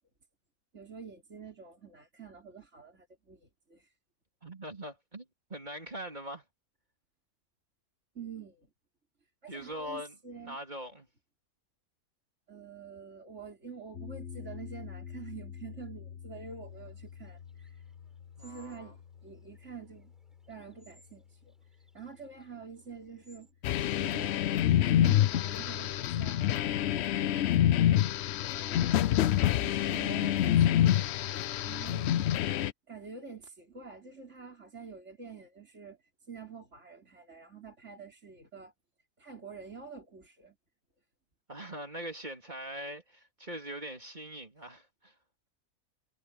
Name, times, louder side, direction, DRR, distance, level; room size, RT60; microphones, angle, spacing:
voice 1, 0.7-3.9 8.1-8.7 9.4-10.6 12.5-17.9 18.4-20.1 20.5-23.5 24.0-24.5 24.8-27.5 28.4-29.2 29.6-32.2 32.9-38.7 39.2-40.6, right 6 dB, 45° right, 4.9 m, -47 dB
voice 2, 4.4-5.2 5.5-6.4 9.5-10.1 10.4-11.1 18.4-19.0 28.7-29.3 41.5-45.1, equal, 30° right, 3.6 m, -42 dB
sound 1, 13.9-24.2, left 8 dB, 40° left, 2.2 m, -48 dB
sound 2, 16.7-23.5, equal, ahead, 7.0 m, -66 dB
sound 3, 23.6-32.7, left 11 dB, 75° left, 0.6 m, -27 dB
omnidirectional pair, 1.6 m